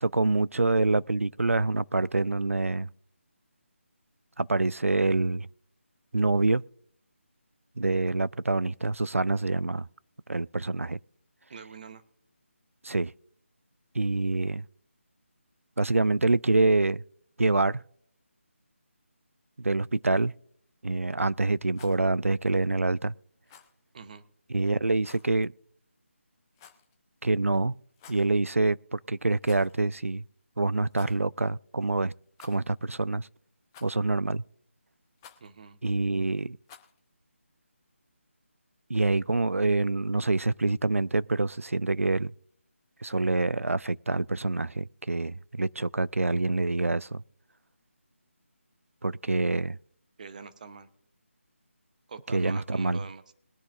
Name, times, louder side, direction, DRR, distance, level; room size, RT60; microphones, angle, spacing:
voice 1, 0.0-2.9 4.4-5.5 6.1-6.6 7.8-9.9 10.3-11.0 12.8-13.1 13.9-14.6 15.8-17.0 17.4-17.8 19.6-20.3 20.8-23.1 24.5-25.5 27.2-27.8 28.1-30.2 30.6-32.1 32.4-33.3 33.8-34.4 35.8-36.6 38.9-42.3 43.0-47.2 49.0-49.8 52.3-53.0, right 2 dB, 85° right, 0.4 m, -26 dB
voice 2, 11.5-12.0 23.9-24.2 35.4-35.8 50.2-50.9 52.1-53.3, right 5 dB, 35° right, 0.9 m, -44 dB
Rattle, 21.6-22.0 23.4-23.7 25.0-25.3 26.5-26.9 27.9-28.3 29.4-29.8 30.1-30.2 30.9-31.2 32.3-32.8 33.7-34.1 35.2-35.5 36.6-37.0, left 8 dB, 15° left, 0.7 m, -53 dB
21.5 x 10.0 x 2.6 m
figure-of-eight pair, 155°, 7 cm